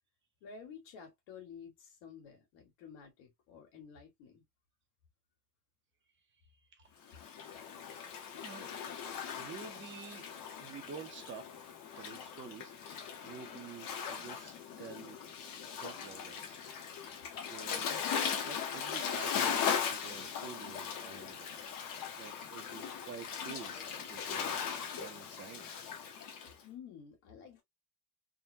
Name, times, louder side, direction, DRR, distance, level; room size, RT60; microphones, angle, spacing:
voice 1, 0.4-4.5 26.6-27.6, left 6 dB, 90° left, 1.7 m, -51 dB
voice 2, 6.7-7.2 8.3-11.6 11.9-12.7 13.2-15.2 15.7-16.7 16.9-18.0 18.4-21.5 22.2-24.7 24.9-25.7, right 6 dB, 25° right, 0.6 m, -50 dB
Waves surf, 7.1-26.5, left 7 dB, 45° left, 0.8 m, -39 dB
3.7 x 2.1 x 2.6 m
cardioid pair, 165°, 46 cm